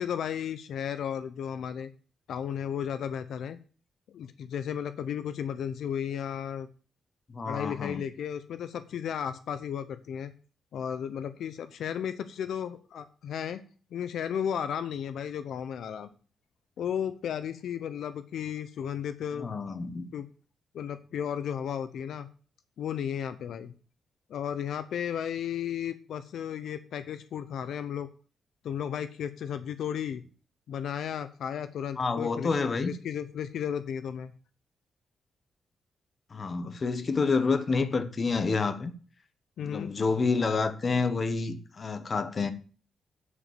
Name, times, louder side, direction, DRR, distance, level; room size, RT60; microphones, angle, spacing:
voice 1, 0.0-1.9 2.3-3.6 4.1-6.7 7.4-10.3 10.7-13.6 13.9-16.1 16.8-19.5 20.1-20.3 20.7-22.3 22.8-23.7 24.3-28.1 28.6-30.2 30.7-32.5 32.8-34.3 39.6-39.9, left 8 dB, 80° left, 0.7 m, -34 dB
voice 2, 7.3-8.0 19.4-20.1 32.0-32.9 36.3-38.9 39.6-42.5, left 4 dB, 40° left, 1.1 m, -28 dB
9.8 x 5.2 x 7.4 m
cardioid pair, 115°, 0 cm